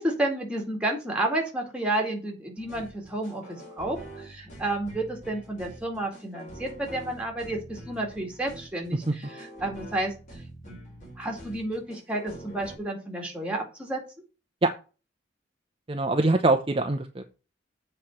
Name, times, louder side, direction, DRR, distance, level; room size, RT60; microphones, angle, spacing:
voice 1, 0.0-10.8 11.2-14.0, right 1 dB, 5° right, 0 dB, 2.2 m, -31 dB
sound 1, 2.6-12.7, right 1 dB, 40° left, 4.0 m, -45 dB
voice 2, 15.9-17.2, right 2 dB, 30° right, 5 dB, 0.7 m, -23 dB
7.7 x 4.4 x 6.5 m, 0.33 s
head